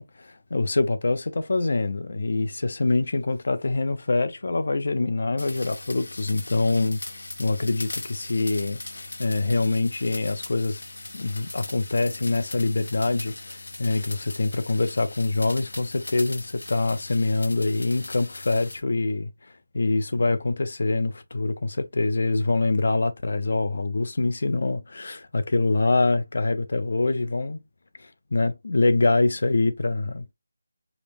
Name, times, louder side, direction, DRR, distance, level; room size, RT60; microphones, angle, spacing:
voice 1, 0.0-7.0 7.4-8.8 9.2-10.8 11.1-19.3 19.7-27.6 28.0-30.3, left 3 dB, 45° left, 0.5 m, -25 dB
sound 1, 5.4-18.8, left 2 dB, 85° left, 0.7 m, -39 dB
4.9 x 2.0 x 3.2 m
figure-of-eight pair, 180°, 0 cm